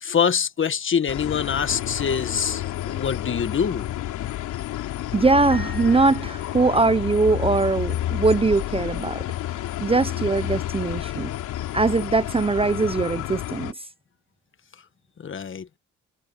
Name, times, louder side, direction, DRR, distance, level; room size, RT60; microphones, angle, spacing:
voice 1, 0.0-3.9 15.2-15.7, left 7 dB, 40° left, 1.5 m, -25 dB
sound 1, 1.1-13.7, left 13 dB, 90° left, 3.0 m, -30 dB
voice 2, 5.1-9.2 9.8-11.3 11.7-13.9, right 3 dB, 20° right, 0.7 m, -21 dB
Piano, 5.5-7.0, left 1 dB, 5° left, 3.7 m, -44 dB
cardioid pair, 90°, 30 cm